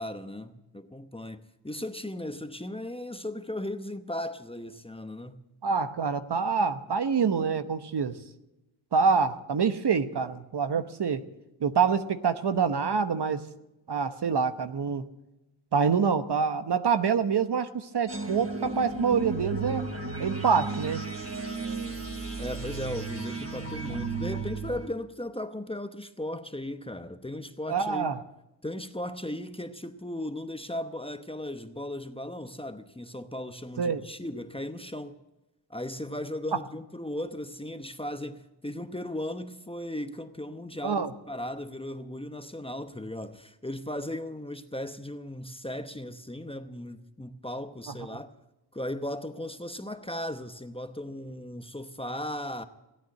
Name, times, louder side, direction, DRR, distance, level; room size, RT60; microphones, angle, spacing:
voice 1, 0.0-5.4 22.4-28.1 28.6-35.2 35.7-48.3 48.7-52.6, left 1 dB, 10° left, 0.9 m, -37 dB
voice 2, 5.6-8.2 8.9-11.2 11.6-13.4 13.9-15.1 15.7-19.8 20.2-21.0 27.7-28.2 33.8-34.0 40.8-41.1, right 6 dB, 55° right, 1.0 m, -26 dB
sound 1, 18.1-24.9, right 3 dB, 30° right, 2.9 m, -34 dB
17.5 x 9.2 x 8.5 m
cardioid pair, 70°, 48 cm